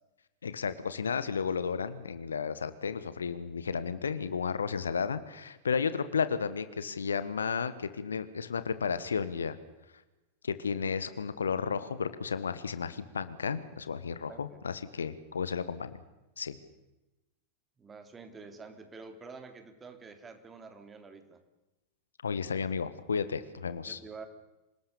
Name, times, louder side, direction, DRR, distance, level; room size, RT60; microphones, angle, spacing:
voice 1, 0.4-9.5 10.4-16.0 16.4-16.5 22.2-24.0, left 6 dB, 70° left, 13 dB, 1.5 m, -33 dB
voice 2, 14.3-14.6 17.8-21.4 23.8-24.3, right 4 dB, 20° right, 8 dB, 3.2 m, -48 dB
27.0 x 19.0 x 7.0 m, 1.0 s
figure-of-eight pair, 90°, 0 cm